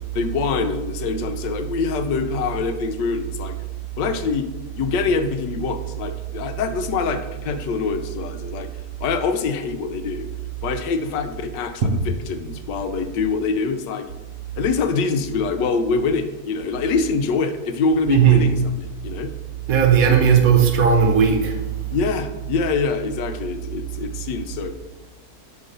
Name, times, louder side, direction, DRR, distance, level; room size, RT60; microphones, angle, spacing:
voice 1, 0.1-3.5 4.0-4.5 4.8-8.7 9.0-10.3 10.6-14.1 14.6-19.3 21.9-24.7, left 4 dB, 90° left, 8 dB, 1.3 m, -24 dB
voice 2, 18.1-18.5 19.7-21.6, right 7 dB, 60° right, 3 dB, 1.1 m, -16 dB
7.7 x 3.2 x 5.3 m, 1.1 s
omnidirectional pair, 1.8 m